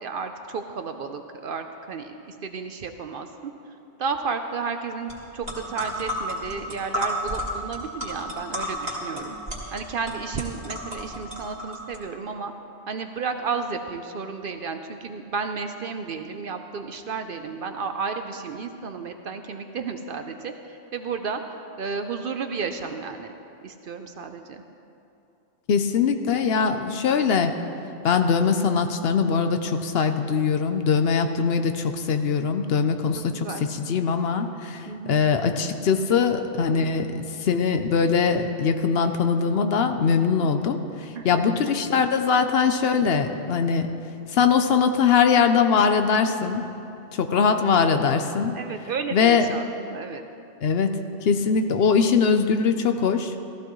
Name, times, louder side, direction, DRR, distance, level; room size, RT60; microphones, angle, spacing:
voice 1, 0.0-3.5 4.0-9.3 9.7-12.5 12.9-23.3 23.6-24.6 33.1-33.6 34.9-35.2 41.1-41.8 48.5-50.2, right 5 dB, 60° right, 7 dB, 0.7 m, -32 dB
sound 1, 5.1-5.2 5.4-12.0, equal, 40° right, 2.4 m, -32 dB
voice 2, 25.7-27.6 28.0-43.9 44.3-46.7 47.1-48.5 49.1-49.6 50.6-53.3, left 6 dB, 65° left, 7 dB, 0.8 m, -22 dB
15.0 x 14.5 x 3.1 m, 2.7 s
omnidirectional pair, 1.2 m